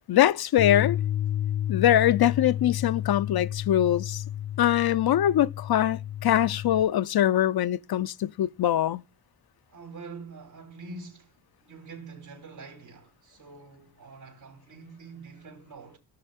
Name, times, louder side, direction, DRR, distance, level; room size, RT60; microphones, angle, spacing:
voice 1, 0.1-1.0 1.7-4.2 4.6-9.0, left 11 dB, 50° left, 0.6 m, -23 dB
Bass guitar, 0.6-6.8, left 11 dB, 80° left, 1.0 m, -31 dB
voice 2, 9.7-16.0, right 4 dB, 80° right, 3.0 m, -45 dB
16.5 x 6.3 x 3.5 m
supercardioid pair, 40°, 47 cm